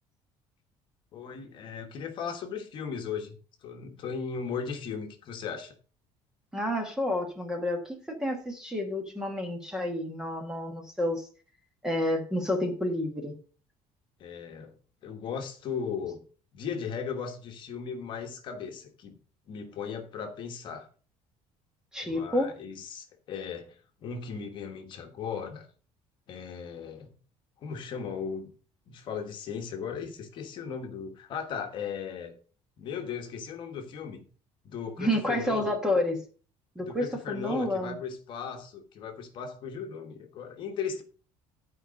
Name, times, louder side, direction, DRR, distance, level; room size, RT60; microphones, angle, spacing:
voice 1, 1.1-3.4 3.6-5.7 14.2-14.8 15.0-16.2 16.5-19.2 19.5-20.9 22.0-25.7 26.3-27.1 27.6-28.5 28.9-32.3 32.8-34.3 34.6-35.7 36.8-41.0, left 6 dB, 45° left, 5 dB, 1.3 m, -37 dB
voice 2, 6.5-11.3 11.8-13.3 21.9-22.5 35.0-36.2 36.7-38.0, left 1 dB, 5° right, 3 dB, 1.3 m, -29 dB
11.0 x 4.9 x 5.2 m, 0.39 s
cardioid pair, 175°, 12 cm